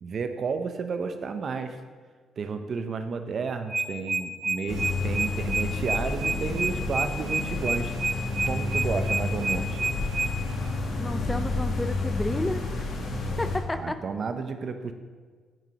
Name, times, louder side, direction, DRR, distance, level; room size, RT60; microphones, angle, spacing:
voice 1, 0.0-1.8 2.4-8.0 8.4-9.8 13.7-14.9, right 5 dB, 50° right, 8 dB, 0.5 m, -32 dB
sound 1, 3.5-10.3, right 3 dB, 15° right, 0.8 m, -28 dB
sound 2, 4.7-13.6, left 2 dB, 70° left, 1.0 m, -30 dB
voice 2, 11.0-12.9 13.4-13.9, left 1 dB, 15° left, 10 dB, 0.3 m, -31 dB
9.0 x 5.1 x 2.9 m, 1.5 s
cardioid pair, 90°, 0 cm